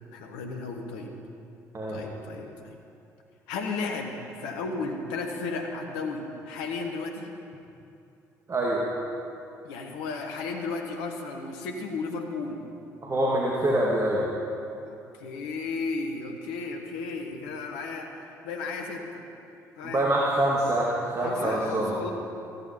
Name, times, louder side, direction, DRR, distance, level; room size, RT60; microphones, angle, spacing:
voice 1, 0.1-1.1 1.9-2.8 3.5-7.3 9.6-12.6 14.8-19.2 19.8-20.1 21.2-22.1, left 4 dB, 70° left, 3 dB, 1.4 m, -34 dB
voice 2, 8.5-8.8 13.0-14.2 19.8-21.9, right 1 dB, 35° right, -4 dB, 2.1 m, -25 dB
14.5 x 14.5 x 4.4 m, 2.7 s
figure-of-eight pair, 50°, 9 cm